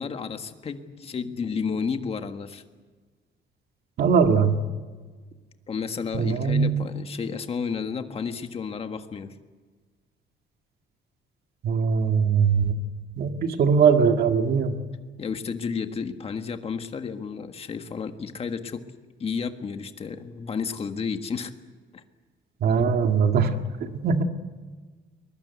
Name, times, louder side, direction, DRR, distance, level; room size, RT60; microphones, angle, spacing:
voice 1, 0.0-2.6 5.7-9.3 15.2-18.8 19.2-21.5 21.9-22.0, left 5 dB, 30° left, 7 dB, 1.6 m, -32 dB
voice 2, 4.0-4.6 6.1-6.8 11.6-12.7 13.2-14.8 22.6-24.2, right 6 dB, 55° right, 6 dB, 2.0 m, -21 dB
22.5 x 21.5 x 8.2 m, 1.4 s
cardioid pair, 165°, 19 cm